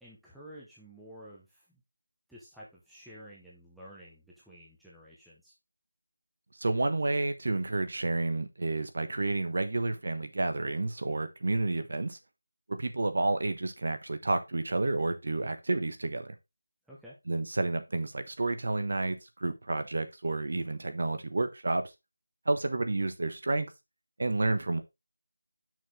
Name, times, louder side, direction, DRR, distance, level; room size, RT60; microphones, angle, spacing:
voice 1, 0.0-1.8 2.3-5.5 16.9-17.2, equal, ahead, 0.8 m, -51 dB
voice 2, 6.6-12.2 12.7-16.3 17.3-21.8 22.5-23.7 24.2-24.8, right 2 dB, 45° right, 1.2 m, -30 dB
6.5 x 6.3 x 3.5 m
figure-of-eight pair, 175°, 0 cm